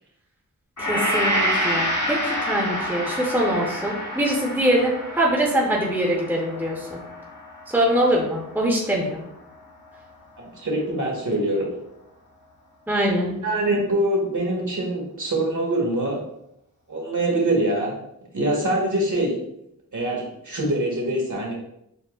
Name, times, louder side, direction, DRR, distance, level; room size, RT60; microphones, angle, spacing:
Gong, 0.8-9.2 9.5-9.7, equal, 55° left, 1.3 m, -28 dB
voice 1, 0.8-7.0 7.7-9.2 12.9-13.3, right 1 dB, 5° right, -3 dB, 0.8 m, -23 dB
voice 2, 10.4-11.7 13.4-16.2 16.9-17.9 18.3-19.3 19.9-21.5, right 1 dB, 55° right, -2 dB, 1.3 m, -24 dB
6.7 x 2.3 x 2.4 m, 0.78 s
wide cardioid pair, 70°, 36 cm